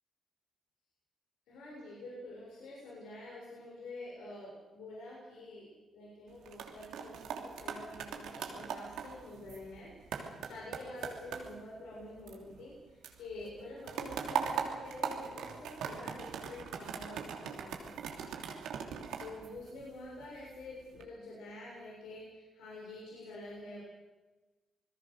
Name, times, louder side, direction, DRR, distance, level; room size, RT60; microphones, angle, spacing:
voice 1, 1.5-9.9 10.4-17.9 19.2-23.8, left 2 dB, 75° left, -4 dB, 7.2 m, -47 dB
sound 1, 6.3-12.8 13.0-20.2 20.7-21.0, right 7 dB, 75° right, 3.0 m, -41 dB
26.5 x 21.0 x 6.6 m, 1.2 s
hypercardioid pair, 45°, 0 cm